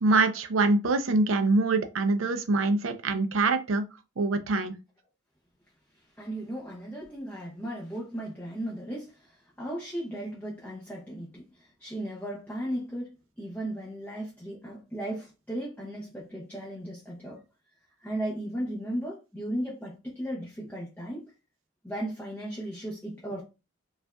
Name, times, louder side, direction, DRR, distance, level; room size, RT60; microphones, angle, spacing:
voice 1, 0.0-3.8 4.2-4.7, right 3 dB, 85° right, 0.5 m, -24 dB
voice 2, 6.2-17.4 18.0-21.3 21.8-23.4, right 1 dB, 10° left, 0.8 m, -36 dB
5.0 x 2.5 x 2.3 m
head